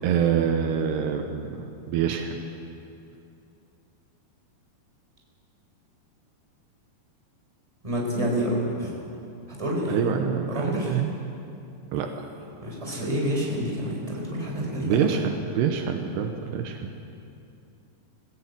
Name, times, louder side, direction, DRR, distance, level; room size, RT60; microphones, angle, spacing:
voice 1, 0.0-2.4 9.9-11.1 11.9-12.3 14.8-16.9, right 8 dB, 80° right, 4 dB, 3.0 m, -26 dB
voice 2, 7.8-8.9 9.5-10.1 10.5-11.0 12.6-15.1, equal, 10° right, -3 dB, 4.3 m, -28 dB
20.5 x 15.5 x 8.4 m, 2.6 s
omnidirectional pair, 5.0 m